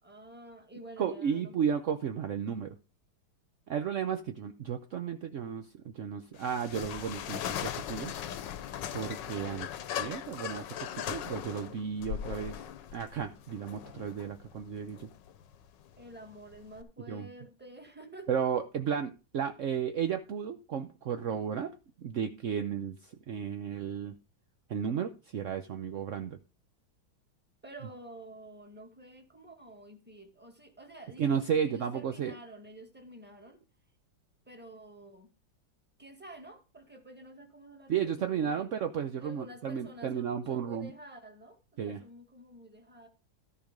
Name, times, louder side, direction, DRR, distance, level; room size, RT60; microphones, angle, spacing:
voice 1, 0.0-1.5 16.0-18.5 27.6-33.6 34.5-35.3 36.0-38.8 39.2-43.1, right 1 dB, 5° right, 4 dB, 1.7 m, -50 dB
voice 2, 1.0-2.8 3.7-8.1 8.9-9.7 10.0-12.6 12.9-15.1 17.1-17.3 18.3-21.7 22.0-24.1 24.7-26.4 31.2-32.3 37.9-40.9 41.8-42.0, right 7 dB, 65° right, 7 dB, 0.7 m, -33 dB
sound 1, 6.4-16.8, left 10 dB, 70° left, 1.4 m, -39 dB
14.0 x 5.1 x 5.2 m, 0.31 s
omnidirectional pair, 2.2 m